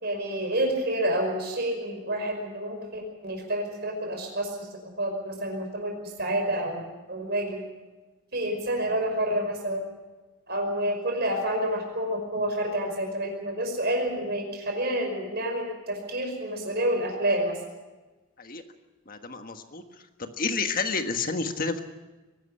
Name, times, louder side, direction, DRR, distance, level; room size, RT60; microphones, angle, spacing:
voice 1, 0.0-4.5 5.0-7.6 8.3-9.9 10.5-17.6, right 1 dB, 50° right, 2 dB, 5.5 m, -29 dB
voice 2, 19.1-19.8 20.2-21.8, left 4 dB, 40° left, 7 dB, 1.5 m, -30 dB
23.0 x 12.5 x 9.9 m, 1.2 s
head